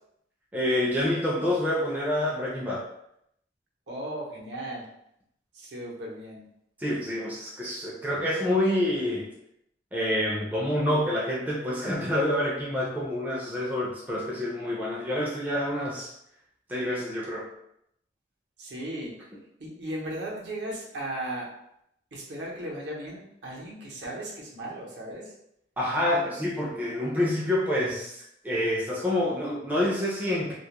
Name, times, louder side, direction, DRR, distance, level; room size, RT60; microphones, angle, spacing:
voice 1, 0.5-2.9 6.8-9.3 9.9-16.1 16.7-17.5 25.8-30.5, left 1 dB, 10° right, -6 dB, 0.4 m, -27 dB
voice 2, 3.9-4.9 5.5-6.4 18.6-19.1 19.6-21.5 22.1-25.3 26.2-26.3, right 1 dB, 70° right, -3 dB, 0.7 m, -36 dB
2.3 x 2.0 x 2.8 m, 0.77 s
head